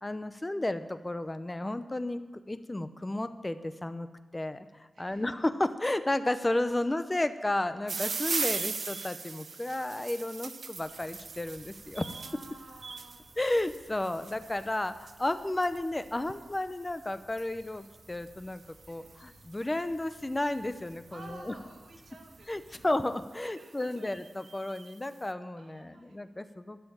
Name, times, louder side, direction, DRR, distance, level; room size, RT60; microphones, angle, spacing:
voice 1, 0.0-4.1 4.3-12.0 13.4-21.5 22.5-26.8, left 1 dB, 20° left, 11 dB, 0.7 m, -33 dB
voice 2, 4.9-5.4 12.0-13.2 18.9-19.2 21.1-22.9 23.4-24.1 25.5-26.2, right 3 dB, 75° right, 1 dB, 2.0 m, -52 dB
sound 1, 7.9-21.1 21.9-22.3 22.9-23.0 23.2-23.3 23.6-25.0, right 4 dB, 60° right, 0.5 m, -40 dB
Chirp tweet, 10.7-22.9, left 1 dB, 70° left, 4.1 m, -60 dB
12.5 x 6.9 x 8.6 m, 1.3 s
wide cardioid pair, 105°, 0 cm